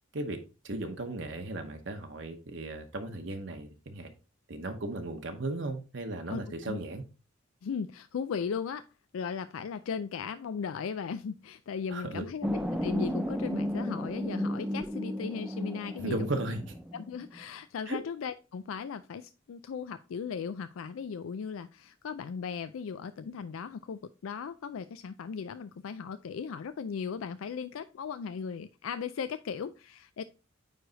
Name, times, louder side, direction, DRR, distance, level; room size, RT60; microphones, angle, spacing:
voice 1, 0.6-4.1 4.5-7.0 11.9-12.2 16.0-16.8 17.9-18.0, right 2 dB, 60° right, 4 dB, 0.9 m, -36 dB
voice 2, 6.3-6.8 7.6-8.9 9.1-16.2 16.9-30.2, left 6 dB, 90° left, 11 dB, 0.4 m, -37 dB
sound 1, 12.4-17.4, equal, 5° right, 0.5 m, -33 dB
9.2 x 3.3 x 3.9 m, 0.32 s
head